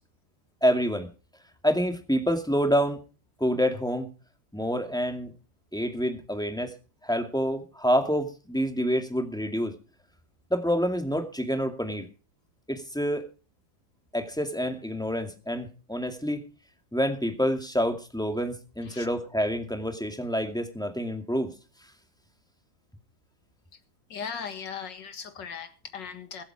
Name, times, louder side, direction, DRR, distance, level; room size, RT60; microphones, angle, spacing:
voice 1, 0.6-1.1 1.6-3.1 3.4-4.1 4.5-5.3 5.7-6.7 7.0-9.7 10.5-12.1 12.7-13.2 14.1-16.4 16.9-21.5, equal, ahead, 5 dB, 2.1 m, -27 dB
voice 2, 24.1-26.4, left 6 dB, 60° left, 9 dB, 2.4 m, -38 dB
23.0 x 8.0 x 4.8 m, 0.34 s
omnidirectional pair, 2.2 m